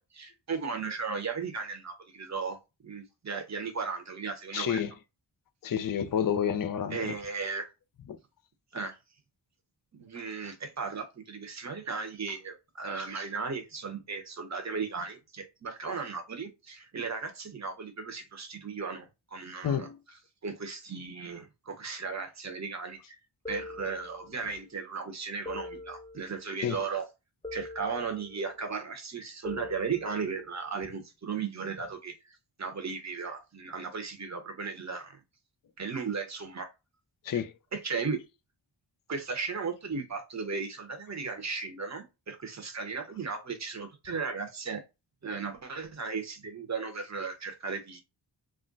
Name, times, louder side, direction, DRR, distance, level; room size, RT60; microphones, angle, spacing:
voice 1, 0.0-2.6 2.8-4.8 6.9-7.7 8.7-9.0 9.9-19.9 20.4-23.2 23.5-27.0 27.5-32.1 32.6-35.2 35.8-36.7 37.3-37.4 37.7-38.2 39.1-44.8 45.2-48.0, right 5 dB, 35° right, 0.8 m, -36 dB
voice 2, 4.5-4.9 5.6-7.1 19.6-20.0 26.6-26.9 37.2-37.5, left 8 dB, 45° left, 0.5 m, -29 dB
sound 1, 23.5-24.6 25.5-26.6 27.4-28.6 29.4-30.6, left 3 dB, 15° left, 0.9 m, -44 dB
2.4 x 2.1 x 3.8 m
wide cardioid pair, 50°, 47 cm